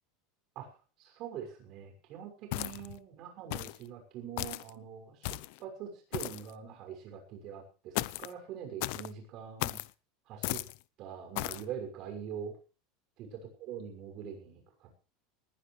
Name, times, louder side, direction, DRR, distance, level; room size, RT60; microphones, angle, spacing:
voice 1, 1.0-9.8 10.3-10.6 11.0-12.6 13.2-13.3 13.6-14.9, right 8 dB, 40° right, 4 dB, 6.3 m, -43 dB
sound 1, 2.5-3.0 3.5-3.8 4.4-4.7 5.2-5.6 6.1-6.5 7.9-8.3 8.8-9.1 9.6-9.9 10.4-10.8 11.3-11.6, left 21 dB, 60° left, 0.7 m, -35 dB
20.5 x 16.0 x 3.3 m, 0.35 s
supercardioid pair, 165°, 0 cm